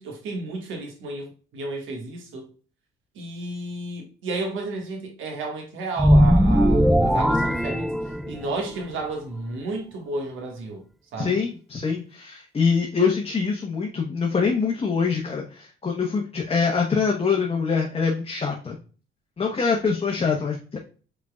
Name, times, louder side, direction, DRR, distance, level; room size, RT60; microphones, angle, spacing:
voice 1, 0.0-2.5 3.1-7.9 8.3-10.8 11.1-11.4, right 2 dB, 85° right, 1.7 m, -32 dB
sound 1, 6.0-8.6, equal, ahead, 0.3 m, -19 dB
voice 2, 11.2-18.8 19.4-20.8, left 5 dB, 30° left, 1.1 m, -24 dB
5.0 x 4.4 x 2.3 m
cardioid pair, 90°, 20 cm